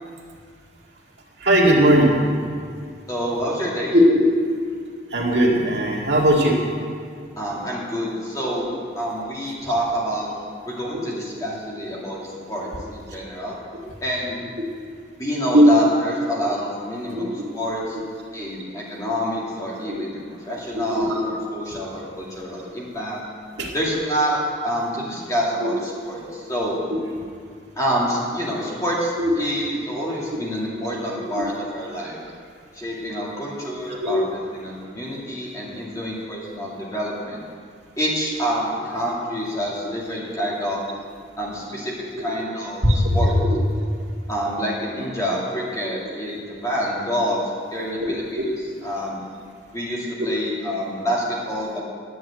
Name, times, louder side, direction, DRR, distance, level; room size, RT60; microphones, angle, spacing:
voice 1, 1.4-2.2 3.9-4.2 5.1-6.6 15.5-15.6 17.1-17.3 19.9-20.0 20.7-21.2 23.6-23.7 25.6-25.7 26.9-27.0 29.2-29.3 31.3-31.4 34.0-34.2 42.8-43.3 48.4-48.5 50.2-50.3, equal, 75° right, -2 dB, 2.1 m, -18 dB
voice 2, 3.1-3.9 7.4-8.7 9.0-10.3 10.6-12.2 12.5-13.6 14.0-14.4 15.2-17.2 17.5-18.0 18.3-23.2 23.7-26.8 27.8-32.2 32.7-37.4 38.0-40.8 41.4-43.3 44.3-47.4 47.7-48.2 48.8-49.2 49.7-51.8, equal, 20° left, -5 dB, 2.4 m, -27 dB
10.5 x 7.8 x 8.3 m, 2.1 s
head